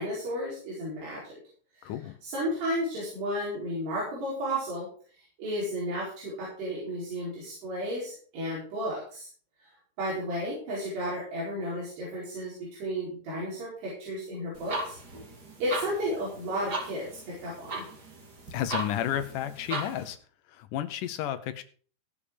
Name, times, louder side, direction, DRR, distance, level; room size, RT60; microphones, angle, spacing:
voice 1, 0.0-1.4 1.7-1.9 2.2-4.9 5.1-9.3 9.6-9.7 10.0-15.0 15.6-17.8, equal, 85° right, -6 dB, 6.7 m, -33 dB
voice 2, 1.8-2.2 18.5-20.2 20.5-21.6, left 11 dB, 75° left, 10 dB, 2.0 m, -32 dB
sound 1, 14.5-20.1, right 2 dB, 35° right, 1.7 m, -38 dB
16.5 x 7.1 x 5.1 m, 0.42 s
omnidirectional pair, 4.6 m